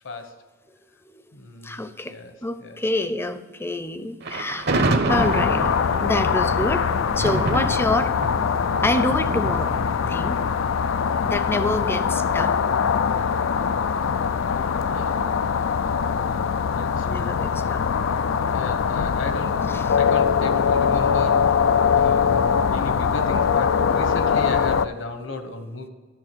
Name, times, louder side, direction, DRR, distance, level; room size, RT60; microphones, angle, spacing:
voice 1, 0.0-0.4 1.3-1.8 2.1-2.3 2.6-2.8 11.1-11.3 14.5-17.4 18.5-19.6 19.9-21.5 21.9-25.9, left 2 dB, 70° left, 7 dB, 1.3 m, -36 dB
voice 2, 1.6-2.1 2.4-5.7 6.0-8.1 8.8-9.7 10.1-10.4 11.2-12.6 16.2-16.3 17.0-17.8 22.2-22.3, left 2 dB, 10° left, 11 dB, 0.6 m, -27 dB
Thunder, 4.2-11.4, right 2 dB, 60° right, 1.0 m, -28 dB
sound 1, 5.1-24.9, left 6 dB, 85° left, 0.4 m, -22 dB
11.0 x 7.2 x 6.2 m, 1.4 s
head